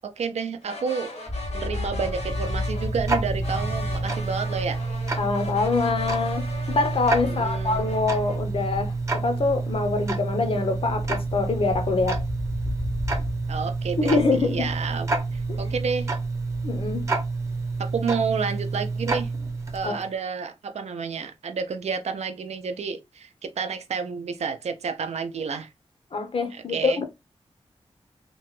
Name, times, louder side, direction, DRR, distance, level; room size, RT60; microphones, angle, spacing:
voice 1, 0.0-1.1 1.5-4.8 7.2-7.8 13.5-16.1 17.8-19.3 19.7-25.7 26.5-27.0, right 5 dB, 80° right, 0.5 m, -30 dB
sound 1, 0.6-2.9 3.4-8.4, left 2 dB, 80° left, 1.0 m, -39 dB
sound 2, 1.3-18.1, left 2 dB, 5° right, 0.4 m, -36 dB
Tick-tock, 1.8-20.1, right 3 dB, 25° right, 0.7 m, -29 dB
voice 2, 5.2-12.2 14.0-14.7 15.5-15.6 16.6-17.1 19.8-20.0 26.1-27.1, left 3 dB, 55° left, 0.6 m, -25 dB
2.9 x 2.2 x 3.0 m
wide cardioid pair, 145°, 11 cm